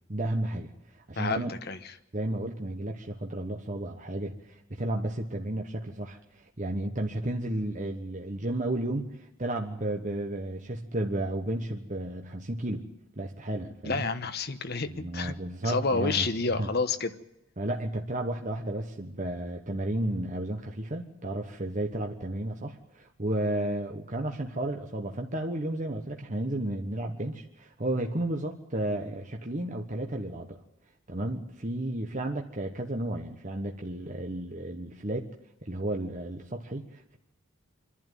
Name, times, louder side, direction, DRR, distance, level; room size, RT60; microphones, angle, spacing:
voice 1, 0.1-1.5 2.1-12.8 13.2-14.0 14.9-16.3 16.5-16.7 17.6-30.6 31.1-35.3 35.6-37.2, right 1 dB, 40° right, 2 dB, 1.3 m, -33 dB
voice 2, 1.2-1.8 13.8-15.3 15.6-17.1, left 4 dB, 50° left, 10 dB, 1.2 m, -29 dB
26.5 x 11.5 x 9.2 m, 0.91 s
head